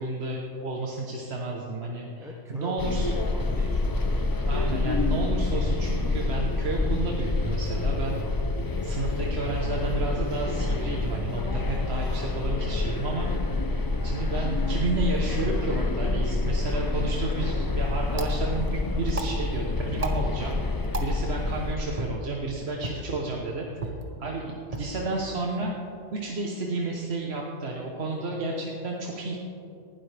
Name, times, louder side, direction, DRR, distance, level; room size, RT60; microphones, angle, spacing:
voice 1, 0.0-3.1 4.5-8.2 8.8-13.3 14.0-20.6 21.0-23.9 24.2-25.7 26.1-29.4, right 2 dB, 55° right, -1 dB, 1.3 m, -31 dB
voice 2, 2.2-4.7 24.0-24.1, left 1 dB, 5° right, -1 dB, 0.7 m, -44 dB
sound 1, 2.8-21.8, left 2 dB, 30° left, 0.4 m, -27 dB
sound 2, 17.1-27.1, right 2 dB, 30° right, 1.1 m, -40 dB
19.0 x 12.0 x 3.4 m, 2.7 s
omnidirectional pair, 1.3 m